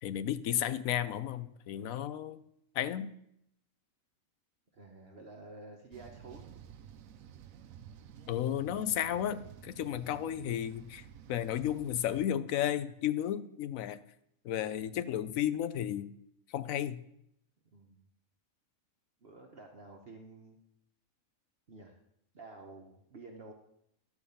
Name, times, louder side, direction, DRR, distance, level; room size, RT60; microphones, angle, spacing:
voice 1, 0.0-2.4 2.7-3.1 8.3-14.0 14.4-16.1 16.5-17.0, left 11 dB, 75° left, 13 dB, 1.0 m, -33 dB
voice 2, 4.7-6.6 17.7-18.1 19.2-20.6 21.7-22.0 22.3-23.5, right 3 dB, 50° right, 1 dB, 1.1 m, -51 dB
sound 1, 5.9-12.3, right 9 dB, 75° right, 1.0 m, -52 dB
12.0 x 4.7 x 6.9 m, 0.75 s
omnidirectional pair, 1.4 m